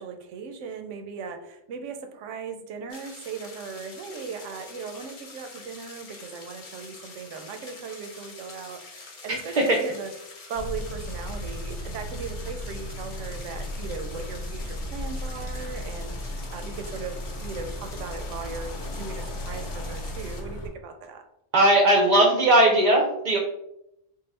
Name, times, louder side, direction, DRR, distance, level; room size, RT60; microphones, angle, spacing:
voice 1, 0.0-10.1 10.5-21.2, right 5 dB, 85° right, 6 dB, 0.9 m, -38 dB
sound 1, 2.9-20.4, left 3 dB, 45° left, 0.7 m, -46 dB
voice 2, 9.3-9.8 21.5-23.4, right 1 dB, 50° right, 0 dB, 0.5 m, -19 dB
sound 2, 10.6-20.7, left 1 dB, 85° left, 1.1 m, -35 dB
3.6 x 2.3 x 3.2 m, 0.80 s
omnidirectional pair, 1.2 m